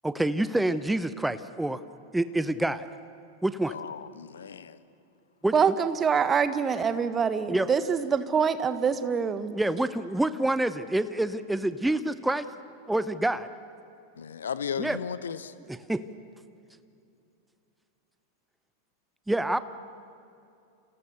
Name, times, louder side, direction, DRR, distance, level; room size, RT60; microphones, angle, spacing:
voice 1, 0.0-1.8 2.1-2.9 3.4-3.7 5.4-5.5 7.5-7.7 9.5-12.5 12.9-13.5 14.8-15.0 15.7-16.0 19.3-19.6, right 1 dB, 5° right, 14 dB, 0.8 m, -27 dB
voice 2, 3.7-4.8 14.2-15.5, left 7 dB, 65° left, 15 dB, 1.0 m, -35 dB
voice 3, 5.5-9.5, right 6 dB, 20° right, 11 dB, 1.4 m, -25 dB
30.0 x 28.0 x 6.9 m, 2.6 s
figure-of-eight pair, 90°, 0 cm